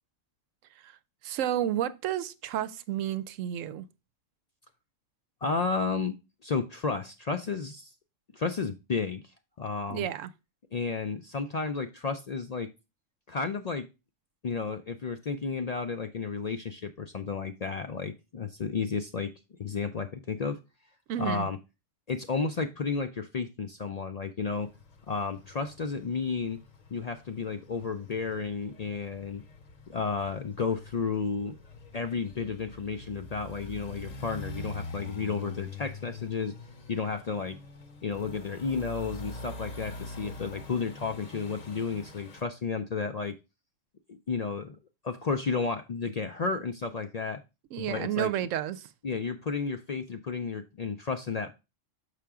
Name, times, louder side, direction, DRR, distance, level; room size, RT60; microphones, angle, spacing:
voice 1, 1.2-3.9 9.9-10.3 21.1-21.5 47.7-48.9, right 11 dB, 85° right, 1.0 m, -31 dB
voice 2, 5.4-6.2 6.4-7.9 8.3-9.2 9.6-10.1 10.7-12.7 13.3-13.9 14.4-19.3 19.6-20.6 21.2-21.6 22.1-24.7 25.1-26.6 26.9-29.4 29.9-31.6 31.9-36.5 36.9-37.6 38.0-43.4 44.1-44.8 45.0-47.4 47.8-48.3 49.0-51.5, left 5 dB, 60° left, 0.4 m, -32 dB
sound 1, 24.5-42.4, left 2 dB, 40° left, 0.8 m, -45 dB
6.6 x 5.7 x 3.6 m
omnidirectional pair, 1.3 m